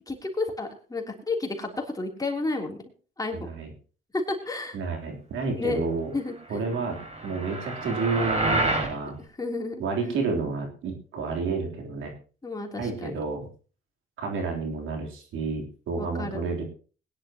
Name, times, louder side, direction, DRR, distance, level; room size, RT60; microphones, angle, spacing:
voice 1, 0.1-2.8 3.2-3.5 4.1-4.8 5.5-5.8 6.1-6.6 9.4-10.2 12.4-13.2 16.0-16.4, left 3 dB, 20° left, 1 dB, 3.4 m, -31 dB
voice 2, 4.7-6.1 6.5-7.0 7.2-9.2 9.8-12.1 12.8-13.5 14.2-16.6, right 4 dB, 80° right, 1 dB, 3.6 m, -30 dB
sound 1, 6.7-8.9, right 2 dB, 30° right, 5.9 m, -28 dB
21.0 x 10.5 x 3.0 m, 0.38 s
cardioid pair, 90°, 20 cm